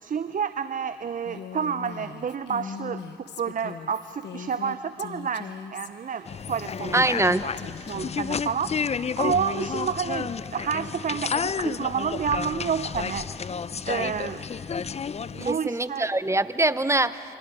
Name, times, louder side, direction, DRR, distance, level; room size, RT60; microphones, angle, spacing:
voice 1, 0.0-7.0 7.8-8.7 9.2-13.2 13.8-14.4 15.3-16.1, right 7 dB, 50° right, 12 dB, 0.7 m, -29 dB
Female speech woman speaking, 1.2-8.3, left 7 dB, 75° left, 1.0 m, -40 dB
sound 1, 6.3-15.5, left 6 dB, 35° left, 0.5 m, -31 dB
voice 2, 6.9-7.5 15.4-17.2, right 2 dB, 15° right, 14 dB, 0.8 m, -23 dB
27.5 x 24.0 x 4.9 m, 2.6 s
supercardioid pair, 55°, 18 cm